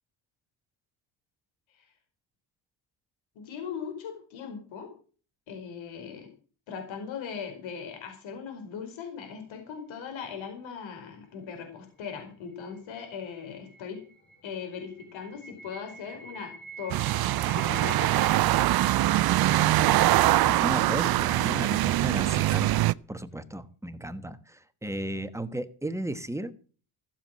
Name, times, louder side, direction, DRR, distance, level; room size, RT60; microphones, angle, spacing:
voice 1, 3.3-4.9 5.5-6.3 6.7-14.0 14.4-18.3, left 6 dB, 75° left, 4 dB, 4.9 m, -39 dB
sound 1, 12.5-21.3, equal, 25° left, 6.3 m, -49 dB
sound 2, 16.9-22.9, right 15 dB, 50° right, 0.5 m, -23 dB
voice 2, 19.5-22.7 23.1-26.5, right 1 dB, 5° right, 11 dB, 1.2 m, -35 dB
14.5 x 7.5 x 7.5 m, 0.40 s
cardioid pair, 90°, 47 cm